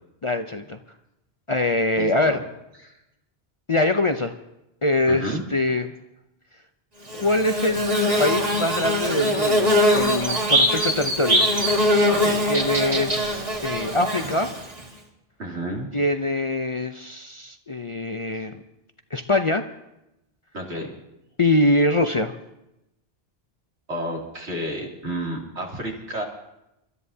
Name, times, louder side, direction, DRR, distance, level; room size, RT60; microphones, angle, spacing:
voice 1, 0.2-0.8 1.5-2.4 3.7-4.3 4.8-5.9 7.1-11.5 12.5-14.5 15.9-18.6 19.1-19.7 21.4-22.4, left 2 dB, 40° left, 7 dB, 0.5 m, -23 dB
voice 2, 2.0-2.4 2.8-2.9 5.1-5.4 12.1-12.7 15.4-15.9 20.5-20.9 23.9-26.2, right 1 dB, 85° right, -2 dB, 3.2 m, -31 dB
Bird / Buzz, 7.1-14.8, equal, 35° right, 1.8 m, -22 dB
29.0 x 13.0 x 2.8 m, 0.90 s
omnidirectional pair, 1.1 m